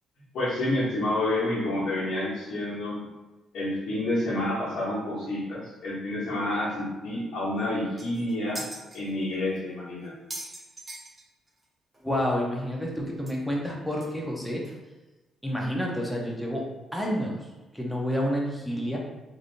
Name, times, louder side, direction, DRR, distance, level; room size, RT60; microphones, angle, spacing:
voice 1, 0.3-3.1 3.5-8.6 8.9-10.1, left 1 dB, 75° left, -11 dB, 1.0 m, -29 dB
sound 1, 7.6-7.7 8.0-9.0 9.6-9.7 10.0-11.6 11.9-12.0 12.3-12.4 13.3-13.4 14.0-14.1 14.6-14.7, right 1 dB, 20° right, 1.0 m, -40 dB
voice 2, 12.0-14.6 15.4-16.7 16.9-17.3 17.7-19.0, equal, ahead, -2 dB, 0.7 m, -29 dB
3.2 x 2.6 x 2.6 m, 1.1 s
cardioid pair, 90°, 0 cm